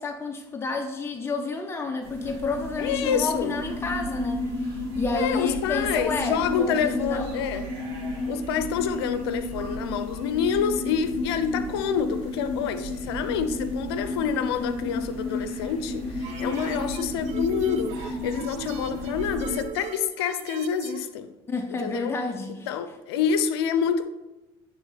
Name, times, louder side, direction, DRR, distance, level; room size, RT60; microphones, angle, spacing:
voice 1, 0.0-7.4 21.5-22.8, left 3 dB, 20° left, 0.8 m, -30 dB
sound 1, 2.0-19.6, left 3 dB, 5° left, 2.1 m, -33 dB
sound 2, 2.0-19.7, right 4 dB, 85° right, 2.1 m, -41 dB
voice 2, 2.8-3.5 5.1-7.6 8.3-21.3 21.8-22.1 22.7-24.1, left 7 dB, 85° left, 0.6 m, -27 dB
sound 3, 16.2-21.1, right 10 dB, 60° right, 0.5 m, -40 dB
9.3 x 3.6 x 4.0 m
hypercardioid pair, 75°, 13 cm